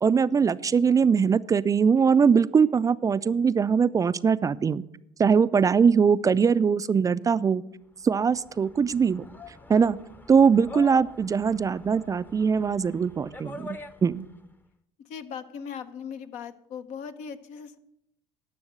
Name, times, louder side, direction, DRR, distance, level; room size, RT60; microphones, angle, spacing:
voice 1, 0.0-4.8 5.2-7.6 8.0-9.3 9.7-10.0 10.3-14.3, right 6 dB, 25° right, 15 dB, 0.4 m, -21 dB
sound 1, 8.0-14.4, left 2 dB, 15° left, 0.8 m, -45 dB
voice 2, 15.0-17.8, left 7 dB, 65° left, 10 dB, 0.9 m, -39 dB
10.5 x 6.2 x 7.6 m, 0.78 s
hypercardioid pair, 70°, 13 cm